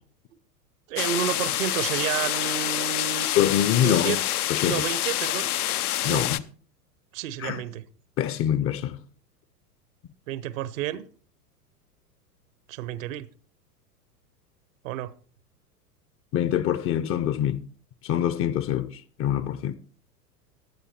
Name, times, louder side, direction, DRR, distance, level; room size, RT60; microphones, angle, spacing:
voice 1, 0.9-3.3 3.8-4.2 4.6-5.5 6.1-6.5 7.1-7.8 10.3-11.1 12.7-13.3 14.8-15.1, right 12 dB, 55° right, 1.0 m, -31 dB
sound 1, 1.0-6.4, left 13 dB, 65° left, 0.8 m, -27 dB
voice 2, 3.4-4.2 4.5-4.8 6.0-6.4 7.4-7.6 8.2-9.0 16.3-17.7 18.0-19.7, left 10 dB, 25° left, 0.8 m, -25 dB
15.0 x 10.0 x 4.4 m
figure-of-eight pair, 90°, 48 cm